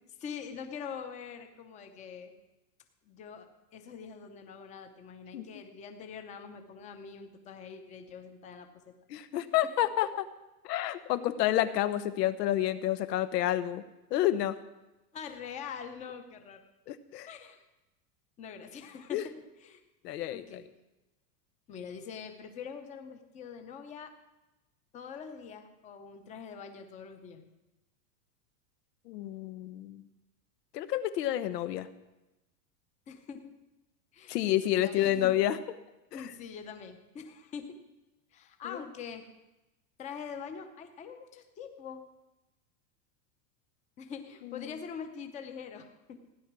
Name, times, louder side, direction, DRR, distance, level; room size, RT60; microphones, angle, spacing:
voice 1, 0.2-2.3 3.0-8.9 15.1-16.6 17.3-17.6 18.4-19.2 19.6-19.8 20.3-20.6 21.7-24.1 24.9-27.4 33.1-33.5 34.1-35.3 36.1-37.8 38.3-39.2 40.0-42.0 44.0-46.3, left 6 dB, 15° left, 6 dB, 0.8 m, -44 dB
voice 2, 9.1-10.1 10.6-13.8 14.1-14.6 16.9-17.3 19.1-19.2 20.0-20.6 29.1-30.0 30.7-31.9 34.3-35.6 36.2-36.3 38.6-38.8 44.5-44.7, left 13 dB, 85° left, 13 dB, 1.2 m, -29 dB
16.0 x 10.0 x 6.1 m, 1.0 s
supercardioid pair, 180°, 47 cm